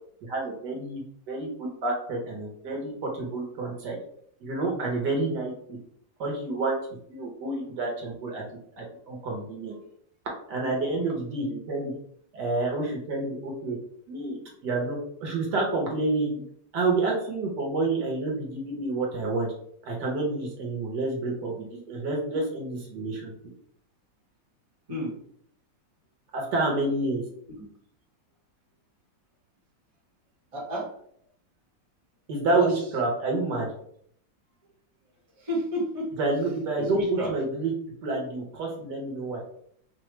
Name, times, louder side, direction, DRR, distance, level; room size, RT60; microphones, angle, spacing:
voice 1, 0.3-4.0 4.4-5.8 6.2-6.8 7.1-8.4 8.8-9.7 10.5-11.9 12.3-13.8 14.1-16.4 16.7-19.5 19.8-23.3 26.3-27.2 32.3-33.7 36.2-37.7 38.0-39.4, right 2 dB, 70° right, -1 dB, 1.5 m, -29 dB
voice 2, 30.5-30.9 32.5-32.7 35.4-36.1 36.8-37.3, equal, 20° right, -5 dB, 1.1 m, -31 dB
4.9 x 2.3 x 3.1 m, 0.66 s
omnidirectional pair, 2.0 m